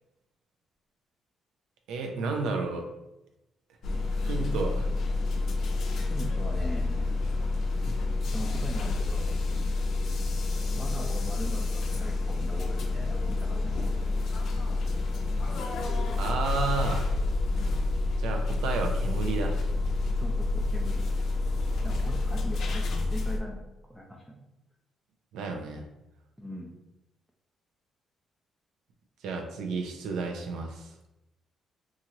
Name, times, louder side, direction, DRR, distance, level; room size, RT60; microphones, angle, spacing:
voice 1, 1.9-2.9 4.2-4.9 16.2-17.1 18.2-19.6 25.3-25.8 29.2-30.9, right 4 dB, 85° right, 3 dB, 0.5 m, -32 dB
sound 1, 3.8-23.4, left 2 dB, 65° left, 0.4 m, -28 dB
voice 2, 6.1-7.1 8.3-9.3 10.8-13.9 20.1-21.1 21.8-23.6 23.9-24.4 26.4-26.7, equal, ahead, -3 dB, 0.5 m, -40 dB
3.0 x 2.4 x 2.8 m, 0.94 s
cardioid pair, 90°, 0 cm